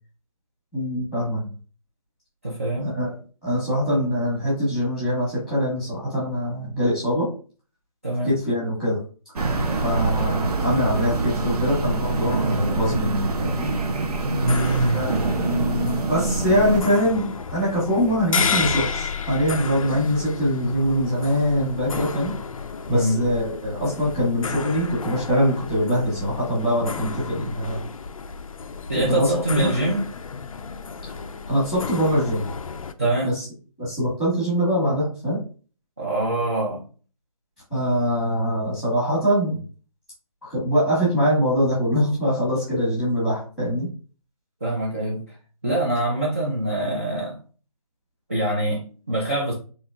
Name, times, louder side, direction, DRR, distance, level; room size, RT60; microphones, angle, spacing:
voice 1, 0.7-1.5 2.8-3.2 3.4-7.3 8.2-9.0 9.8-13.7 14.9-22.3 22.9-27.8 28.9-29.7 31.1-32.5 33.2-33.4 33.8-35.4 37.7-39.6 40.5-43.9, equal, ahead, -8 dB, 1.1 m, -23 dB
voice 2, 2.4-2.9 8.0-8.3 9.6-9.8 14.2-15.0 22.9-23.2 28.9-30.0 33.0-33.3 36.0-36.8 44.6-45.2 45.6-47.4 48.3-49.5, right 1 dB, 20° right, -5 dB, 0.4 m, -24 dB
sound 1, 9.4-16.8, right 3 dB, 80° right, 0.7 m, -25 dB
sound 2, 14.3-32.9, left 5 dB, 60° left, 0.4 m, -32 dB
3.8 x 2.9 x 2.3 m, 0.37 s
figure-of-eight pair, 170°, 19 cm